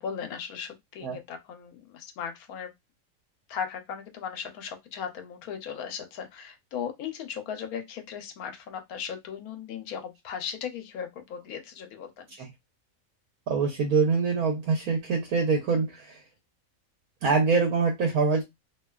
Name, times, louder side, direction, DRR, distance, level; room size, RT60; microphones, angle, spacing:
voice 1, 0.0-2.7 3.5-12.3, left 7 dB, 85° left, 1.1 m, -37 dB
voice 2, 13.5-16.2 17.2-18.4, right 4 dB, 75° right, 1.1 m, -24 dB
2.7 x 2.2 x 2.2 m
omnidirectional pair, 1.5 m